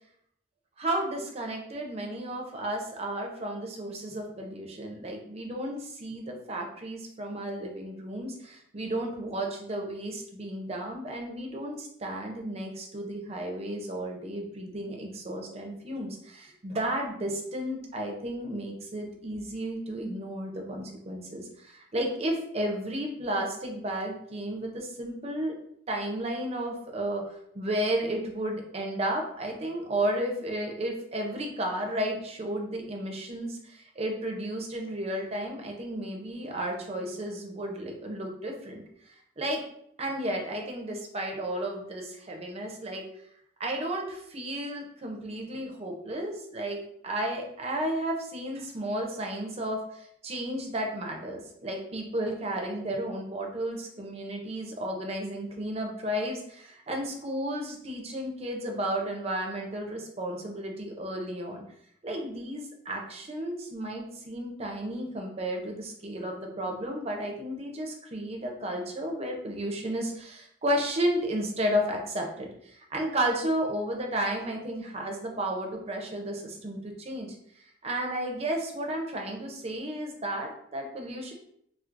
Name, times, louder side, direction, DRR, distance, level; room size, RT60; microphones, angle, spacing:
voice 1, 0.8-25.5 25.9-39.6 40.0-43.0 43.6-61.6 62.0-77.4 77.8-81.3, right 1 dB, 30° right, 1 dB, 0.6 m, -33 dB
4.4 x 2.0 x 2.5 m, 0.71 s
head